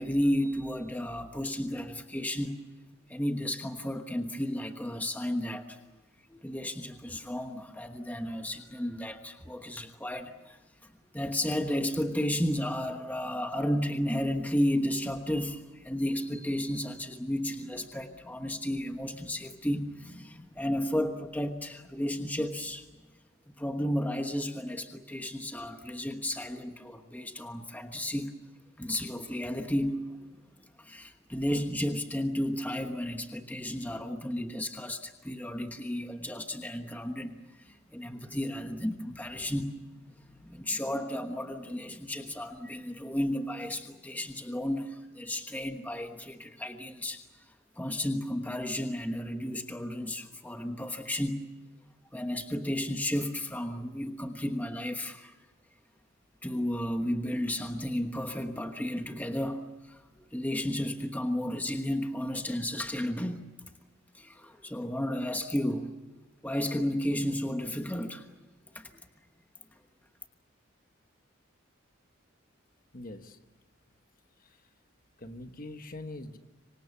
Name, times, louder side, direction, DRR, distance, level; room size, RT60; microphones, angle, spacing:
voice 1, 0.0-2.6 3.1-5.8 6.3-22.9 23.5-28.4 28.8-30.2 30.8-39.9 40.4-47.2 47.8-51.5 52.1-55.4 56.4-63.5 64.1-65.9 66.4-68.3 68.7-69.0, left 1 dB, 10° left, 6 dB, 1.2 m, -33 dB
voice 2, 72.9-73.4 74.4-74.6 75.2-76.4, left 2 dB, 40° left, 8 dB, 1.5 m, -43 dB
26.5 x 24.5 x 7.2 m, 1.2 s
head